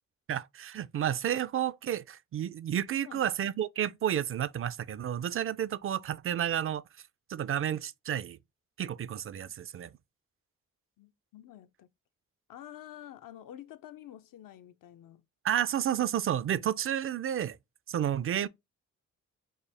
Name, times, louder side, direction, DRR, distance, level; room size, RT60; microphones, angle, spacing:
voice 1, 0.3-6.8 7.3-8.4 8.8-9.9 15.4-17.6 17.9-18.5, right 10 dB, 40° right, 0.4 m, -31 dB
voice 2, 2.9-3.3 11.0-11.9 12.5-15.2, left 11 dB, 70° left, 0.5 m, -49 dB
4.4 x 2.4 x 3.4 m
supercardioid pair, 50°, 34 cm